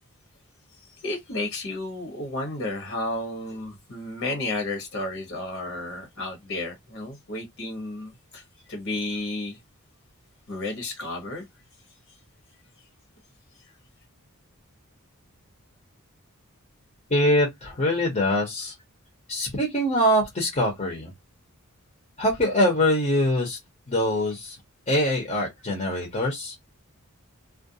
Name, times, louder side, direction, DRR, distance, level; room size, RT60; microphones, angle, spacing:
voice 1, 0.7-9.6 10.5-11.5 13.6-13.8, left 2 dB, 60° left, 1.1 m, -32 dB
voice 2, 17.1-18.7 19.3-21.1 22.2-23.6 23.9-24.6 24.9-26.6, left 1 dB, 35° left, 0.8 m, -23 dB
2.4 x 2.2 x 2.7 m
head